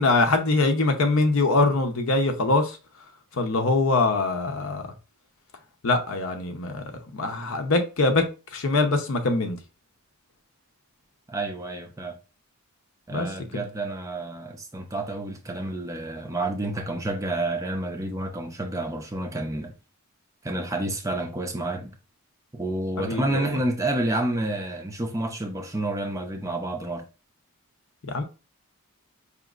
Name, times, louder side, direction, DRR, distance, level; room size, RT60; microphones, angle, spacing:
voice 1, 0.0-2.8 3.3-4.8 5.8-6.8 7.1-9.6 13.1-13.3 23.0-23.5 28.0-28.2, left 3 dB, 65° left, 0.7 m, -23 dB
voice 2, 11.3-12.2 13.1-19.7 20.4-22.0 22.5-27.0, right 2 dB, 15° right, 0.4 m, -29 dB
5.0 x 2.8 x 2.4 m
head